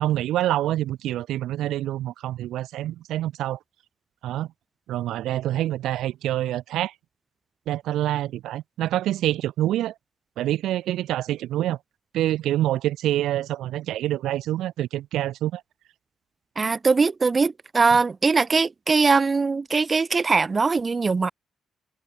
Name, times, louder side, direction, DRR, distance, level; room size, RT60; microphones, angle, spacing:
voice 1, 0.0-3.6 4.2-4.5 4.9-6.9 7.7-9.9 10.4-11.8 12.1-15.6, right 13 dB, 85° right, 1.5 m, -26 dB
voice 2, 16.6-21.3, right 4 dB, 25° right, 1.4 m, -21 dB
cardioid pair, 125°, 0 cm